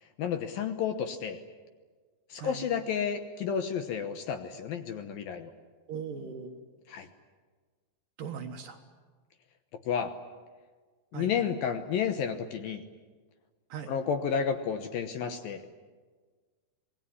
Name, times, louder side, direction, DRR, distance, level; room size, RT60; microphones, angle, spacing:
voice 1, 0.2-1.4 2.3-5.5 6.9-7.1 9.9-10.1 11.1-12.8 13.9-15.7, left 7 dB, 70° left, 8 dB, 2.5 m, -31 dB
voice 2, 5.9-6.6 8.2-8.8 11.1-11.3 13.7-13.9, right 6 dB, 60° right, 4 dB, 2.7 m, -39 dB
26.5 x 20.0 x 10.0 m, 1.4 s
omnidirectional pair, 5.0 m